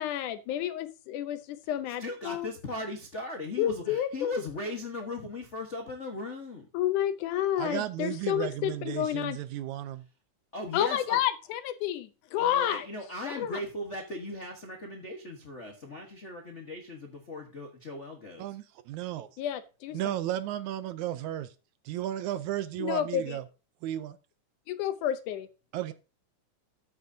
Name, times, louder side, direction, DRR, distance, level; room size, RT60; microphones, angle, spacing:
voice 1, 0.0-2.5 3.6-4.3 6.7-9.4 10.7-12.9 13.2-13.6 19.4-20.1 22.8-23.4 24.7-25.5, left 11 dB, 80° left, 11 dB, 2.2 m, -30 dB
voice 2, 2.0-6.7 10.5-11.2 12.4-18.5, left 2 dB, 65° left, 2 dB, 0.7 m, -38 dB
voice 3, 7.6-10.0 18.4-19.3 19.9-21.5 21.9-23.4 23.8-24.2 25.7-25.9, right 13 dB, 75° right, 12 dB, 1.9 m, -34 dB
13.5 x 7.9 x 2.7 m, 0.32 s
omnidirectional pair, 3.6 m